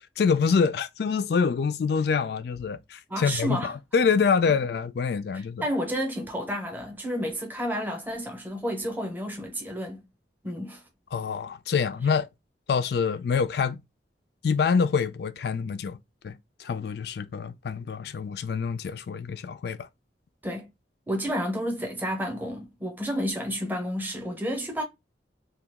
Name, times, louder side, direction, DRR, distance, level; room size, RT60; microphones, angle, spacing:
voice 1, 0.2-5.7 11.1-12.3 12.7-13.8 14.4-16.0 16.2-19.9, left 5 dB, 60° left, 0.3 m, -26 dB
voice 2, 3.1-3.7 5.6-10.1 10.4-10.8 20.4-20.7 21.1-24.8, equal, 10° right, 0.7 m, -31 dB
2.8 x 2.3 x 3.4 m
head